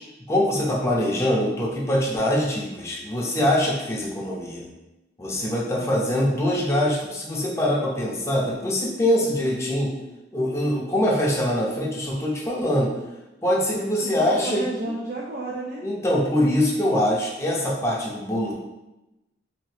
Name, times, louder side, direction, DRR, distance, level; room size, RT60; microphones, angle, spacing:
voice 1, 0.3-4.7 5.2-9.9 10.3-12.9 13.4-14.7 15.8-18.5, left 1 dB, 15° left, -4 dB, 0.5 m, -23 dB
voice 2, 13.7-15.8, right 2 dB, 50° right, -4 dB, 0.4 m, -32 dB
2.9 x 2.7 x 3.1 m, 0.99 s
head